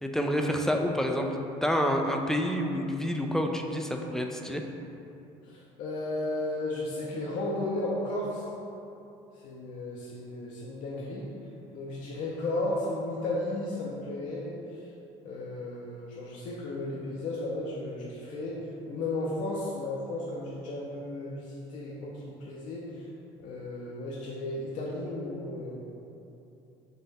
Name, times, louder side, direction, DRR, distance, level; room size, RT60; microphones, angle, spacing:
voice 1, 0.0-1.3 1.6-4.6, equal, 5° left, 2 dB, 0.3 m, -28 dB
voice 2, 5.4-8.4 9.4-11.3 11.7-14.6 15.2-18.6 18.9-22.8 23.4-25.8, left 2 dB, 60° left, -5 dB, 0.6 m, -34 dB
3.9 x 2.5 x 4.0 m, 2.8 s
supercardioid pair, 90°, 15 cm